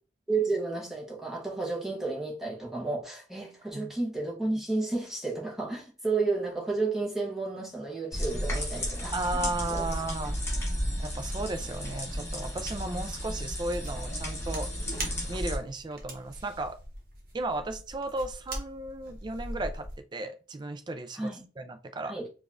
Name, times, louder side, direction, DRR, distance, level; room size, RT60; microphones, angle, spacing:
voice 1, 0.3-9.9 21.2-21.4 22.0-22.3, right 3 dB, ahead, 0.9 m, -32 dB
sound 1, 8.1-15.6, equal, 15° left, 1.3 m, -33 dB
voice 2, 9.1-10.4 11.0-14.7 15.3-16.8 17.3-21.3 21.6-22.1, right 2 dB, 25° right, 0.3 m, -35 dB
sound 2, 13.7-20.0, right 1 dB, 50° right, 0.9 m, -42 dB
4.9 x 2.4 x 2.5 m
head